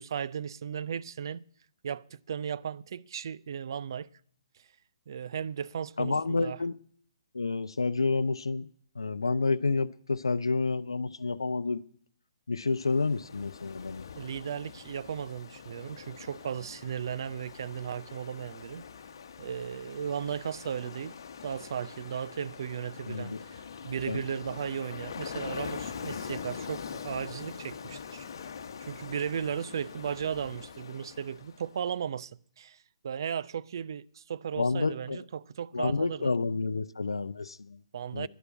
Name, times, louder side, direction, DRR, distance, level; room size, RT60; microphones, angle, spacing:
voice 1, 0.0-1.4 1.8-4.1 5.1-6.6 14.1-18.8 19.4-21.2 21.4-28.2 28.9-32.3 32.6-32.8 33.0-36.3 37.9-38.3, right 8 dB, 55° right, 0.5 m, -36 dB
voice 2, 6.0-6.8 7.3-8.7 9.0-11.8 12.5-14.0 23.1-23.4 24.1-24.2 34.6-35.2 35.7-37.8 38.1-38.3, left 3 dB, 75° left, 0.5 m, -29 dB
Ocean, 12.7-31.8, left 6 dB, 50° left, 1.2 m, -43 dB
11.0 x 10.0 x 9.5 m
figure-of-eight pair, 135°, 3 cm